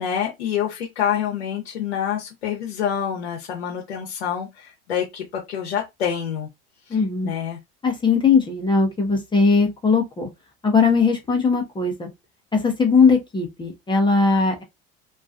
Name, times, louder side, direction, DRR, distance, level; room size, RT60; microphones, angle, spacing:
voice 1, 0.0-6.5 6.9-7.6, left 8 dB, 85° left, 0.7 m, -27 dB
voice 2, 6.9-7.3 7.8-10.3 10.6-12.1 12.5-14.6, left 4 dB, 15° left, 0.7 m, -19 dB
2.4 x 2.3 x 2.5 m
hypercardioid pair, 80°, 32 cm